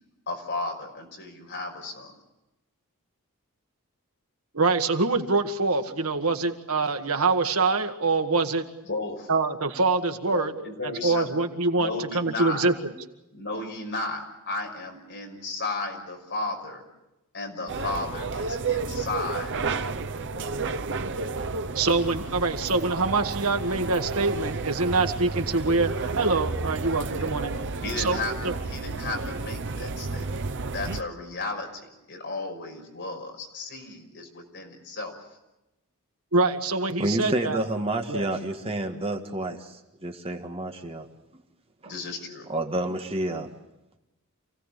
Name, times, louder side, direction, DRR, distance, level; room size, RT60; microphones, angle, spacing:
voice 1, 0.3-2.1 8.9-9.3 10.3-11.3 11.7-12.6 13.3-16.8 17.3-20.0 27.2-27.3 27.8-35.1 41.8-42.5, left 2 dB, 55° left, 2 dB, 5.9 m, -34 dB
voice 2, 4.5-8.6 9.3-10.5 10.8-12.9 21.8-27.5 28.0-28.2 28.4-28.5 36.3-37.6 38.1-38.3, right 3 dB, 70° right, 5 dB, 1.9 m, -25 dB
sound 1, 17.7-31.0, right 4 dB, 55° right, 0.9 m, -31 dB
voice 3, 37.0-41.1 41.3-41.4 41.8-41.9 42.5-43.5, right 1 dB, 25° right, 4 dB, 1.8 m, -29 dB
28.0 x 17.5 x 8.4 m, 0.95 s
head